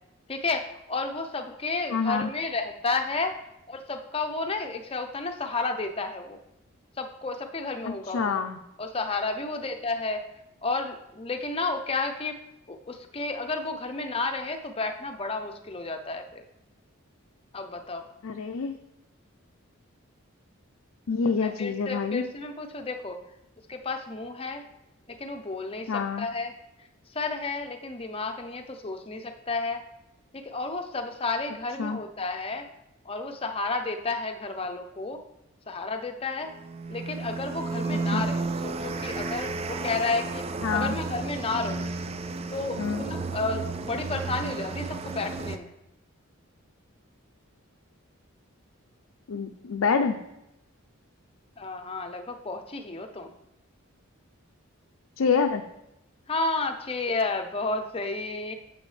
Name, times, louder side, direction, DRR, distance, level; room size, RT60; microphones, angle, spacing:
voice 1, 0.3-3.3 3.7-6.4 7.0-8.4 8.8-10.2 10.6-12.4 12.7-16.4 17.5-18.1 21.3-23.2 23.7-24.6 25.1-26.5 27.1-29.8 30.3-32.7 33.0-35.2 35.7-36.5 36.9-40.4 40.7-41.9 42.5-45.7 51.6-53.3 56.3-58.5, left 3 dB, 25° left, 6 dB, 0.6 m, -32 dB
voice 2, 1.9-2.3 7.9-8.6 18.2-18.7 21.1-22.2 25.9-26.3 31.8-32.0 38.1-38.2 40.6-41.0 42.8-43.0 49.3-50.2 55.2-55.6, left 5 dB, 75° left, 6 dB, 0.5 m, -27 dB
sound 1, 36.5-45.6, right 3 dB, 30° right, 0.4 m, -32 dB
8.3 x 7.6 x 3.3 m, 0.87 s
head